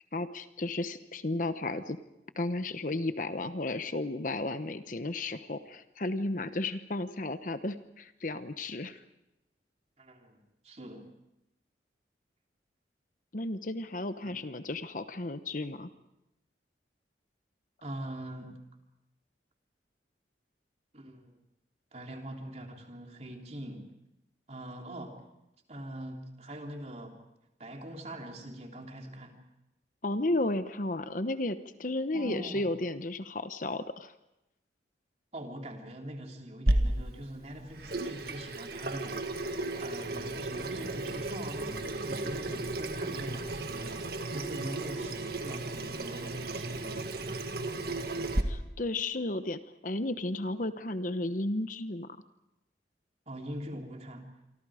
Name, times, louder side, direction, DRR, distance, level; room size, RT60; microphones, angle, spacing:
voice 1, 0.1-2.0 2.4-9.0 13.3-15.9 30.0-34.1 48.4-52.1, left 2 dB, 45° left, 11 dB, 1.0 m, -33 dB
voice 2, 10.0-10.4 10.6-11.1 14.2-14.3 17.8-18.6 20.9-21.4 21.9-23.9 24.5-25.2 25.7-27.2 27.6-29.4 32.1-32.7 35.3-39.5 39.8-47.6 53.3-54.3, right 1 dB, 35° right, 2 dB, 3.4 m, -43 dB
Water tap faucet / Sink (filling or washing), 36.7-48.4, right 2 dB, 55° right, 1.8 m, -34 dB
28.0 x 24.5 x 5.0 m, 0.87 s
head